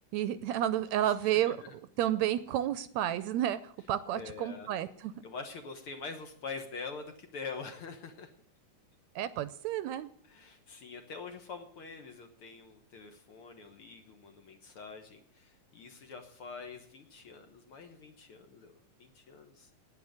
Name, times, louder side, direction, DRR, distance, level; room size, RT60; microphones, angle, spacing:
voice 1, 0.1-1.6 2.0-5.1 9.2-10.1, right 12 dB, 75° right, 14 dB, 1.8 m, -31 dB
voice 2, 1.0-1.7 4.1-4.7 5.2-8.4 10.3-19.7, left 4 dB, 55° left, 6 dB, 1.8 m, -45 dB
10.5 x 9.2 x 9.5 m, 0.65 s
omnidirectional pair, 3.5 m